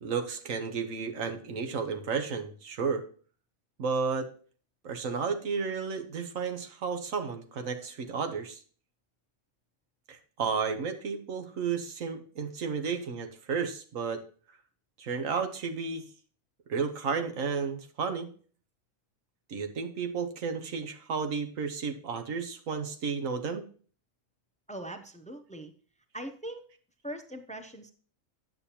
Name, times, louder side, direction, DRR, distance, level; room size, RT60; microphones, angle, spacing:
voice 1, 0.0-3.0 3.8-4.3 4.8-8.6 10.1-14.2 15.0-16.0 16.7-18.3 19.5-23.6, right 5 dB, 70° right, 7 dB, 1.4 m, -32 dB
voice 2, 24.7-25.7 26.1-26.6 27.0-27.9, right 1 dB, 10° left, 8 dB, 0.4 m, -41 dB
9.5 x 8.3 x 2.9 m, 0.43 s
omnidirectional pair, 1.4 m